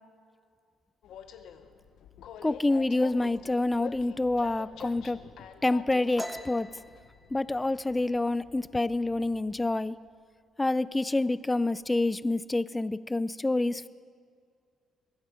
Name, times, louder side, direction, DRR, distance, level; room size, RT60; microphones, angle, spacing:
Train, 1.0-9.7, left 8 dB, 80° left, 0.9 m, -48 dB
voice 1, 2.4-5.2 5.6-6.7 7.3-10.0 10.6-13.9, left 2 dB, 15° left, 17 dB, 0.4 m, -27 dB
sound 1, 6.2-9.6 9.9-10.3 10.6-11.2 11.4-12.2, equal, ahead, 0.8 m, -44 dB
22.0 x 10.5 x 5.1 m, 2.2 s
cardioid pair, 90°, 0 cm